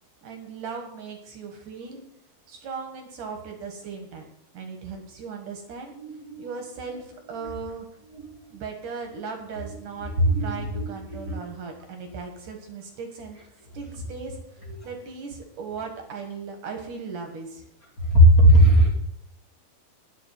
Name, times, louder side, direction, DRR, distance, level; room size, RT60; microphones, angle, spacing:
voice 1, 0.2-2.0 2.5-4.3 4.5-5.9 6.4-7.9 8.5-10.1 10.4-13.4 13.7-17.6, right 5 dB, 65° right, 4 dB, 2.8 m, -37 dB
voice 2, 6.0-6.4 7.3-7.4 8.1-8.3 10.0-11.4 18.1-18.9, equal, 25° left, -4 dB, 2.8 m, -18 dB
10.5 x 7.1 x 9.1 m, 0.78 s
omnidirectional pair, 4.3 m